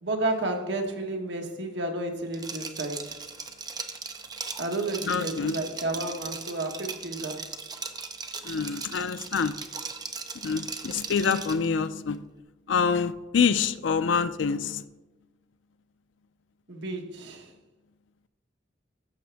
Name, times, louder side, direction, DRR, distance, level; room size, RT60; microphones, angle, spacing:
voice 1, 0.0-3.2 4.6-7.4 16.7-17.5, right 2 dB, 65° right, 3 dB, 1.3 m, -31 dB
Liquid, 2.3-11.7, right 5 dB, 20° right, 0.6 m, -38 dB
voice 2, 5.1-5.6 8.4-9.5 10.4-12.2 12.7-14.8, left 6 dB, 80° left, 13 dB, 0.4 m, -26 dB
14.5 x 7.0 x 3.4 m, 1.1 s
head